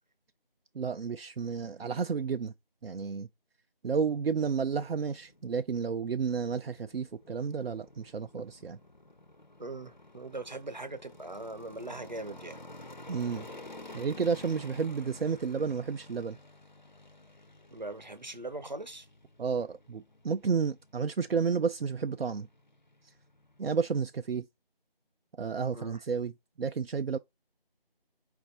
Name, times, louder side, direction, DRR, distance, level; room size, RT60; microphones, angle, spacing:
voice 1, 0.7-2.5 2.8-3.3 3.8-8.8 13.1-13.5 13.9-16.4 19.4-22.5 23.6-24.5 25.4-26.3 26.6-27.2, right 5 dB, 80° right, 0.4 m, -31 dB
sound 1, 4.3-23.6, left 2 dB, 50° left, 0.4 m, -52 dB
voice 2, 9.6-12.6 17.7-19.1 25.7-26.0, right 2 dB, 50° right, 0.8 m, -40 dB
4.5 x 2.5 x 3.8 m
figure-of-eight pair, 170°, 29 cm